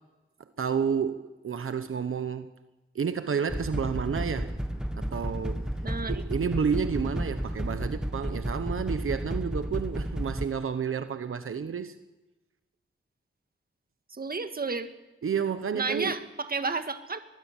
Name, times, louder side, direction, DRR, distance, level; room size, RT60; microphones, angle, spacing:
voice 1, 0.6-2.5 2.9-4.6 5.0-5.6 6.1-11.9 15.2-16.2, right 6 dB, 80° right, 1.1 m, -30 dB
sound 1, 3.2-8.1, left 2 dB, 85° left, 7.3 m, -56 dB
sound 2, 3.5-10.5, equal, 5° right, 1.3 m, -32 dB
voice 2, 5.8-6.2 14.1-14.9 15.7-17.2, right 4 dB, 45° right, 1.8 m, -31 dB
23.5 x 20.5 x 7.3 m
wide cardioid pair, 90°, 21 cm